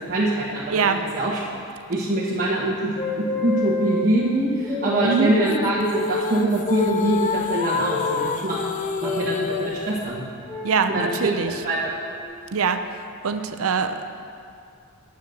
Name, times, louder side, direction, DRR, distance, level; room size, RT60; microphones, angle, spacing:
voice 1, 0.1-1.4 1.9-8.6 9.0-10.2 10.9-11.3 11.6-11.9, right 1 dB, 40° right, -7 dB, 1.3 m, -24 dB
sound 1, 2.9-4.1 4.6-6.3 7.9-8.4 9.0-9.6 10.5-11.0 11.9-12.2, left 3 dB, 10° left, 1.5 m, -30 dB
voice 2, 5.0-5.3 10.6-11.5 12.5-12.8 13.2-14.1, right 5 dB, 70° right, 8 dB, 0.6 m, -23 dB
sound 2, 5.5-10.0, left 5 dB, 35° left, 0.3 m, -27 dB
9.5 x 8.0 x 6.5 m, 2.4 s
head